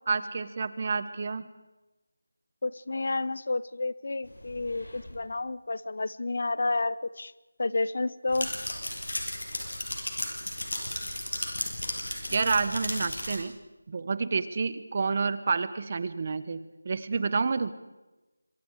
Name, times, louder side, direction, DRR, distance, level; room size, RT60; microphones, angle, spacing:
voice 1, 0.1-1.5 12.3-13.5 13.9-16.6 16.8-17.7, right 4 dB, 30° right, 14 dB, 1.2 m, -29 dB
voice 2, 2.6-7.3 7.6-8.5, left 3 dB, 50° left, 18 dB, 0.8 m, -30 dB
sound 1, 4.3-5.1 8.3-13.4, left 1 dB, 85° left, 7.3 m, -35 dB
27.0 x 22.5 x 4.9 m, 1.1 s
figure-of-eight pair, 170°, 0 cm